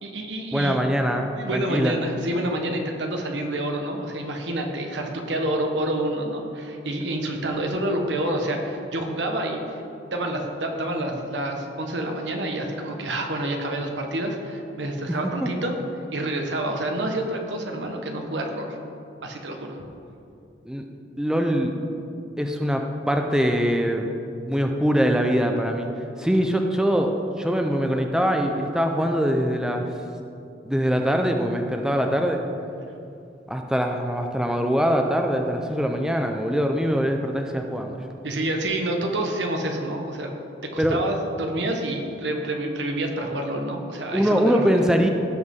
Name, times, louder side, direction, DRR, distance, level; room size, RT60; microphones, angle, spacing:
voice 1, 0.0-0.8 1.4-9.8 10.1-15.7 16.1-18.8 19.2-19.8 38.2-40.3 40.7-44.6, right 1 dB, 90° right, 3 dB, 1.3 m, -28 dB
voice 2, 0.5-1.9 15.1-15.5 20.7-20.8 21.2-21.7 22.4-24.1 24.4-25.9 26.2-29.9 30.6-32.4 33.5-38.0 40.8-41.0 44.1-45.1, equal, 5° right, 3 dB, 0.5 m, -23 dB
16.5 x 6.3 x 3.7 m, 2.6 s
head